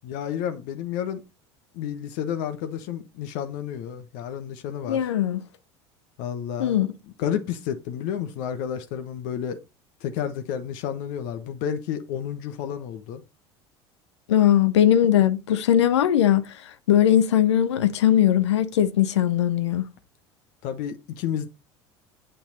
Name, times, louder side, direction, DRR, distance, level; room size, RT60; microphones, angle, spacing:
voice 1, 0.0-1.2 1.7-5.0 6.2-6.8 7.2-9.6 10.0-13.2 20.6-21.5, left 9 dB, 60° left, 1.1 m, -31 dB
voice 2, 4.9-5.4 6.6-6.9 14.3-16.4 16.9-19.9, left 10 dB, 75° left, 0.8 m, -19 dB
8.6 x 5.6 x 5.4 m
figure-of-eight pair, 70°, 15 cm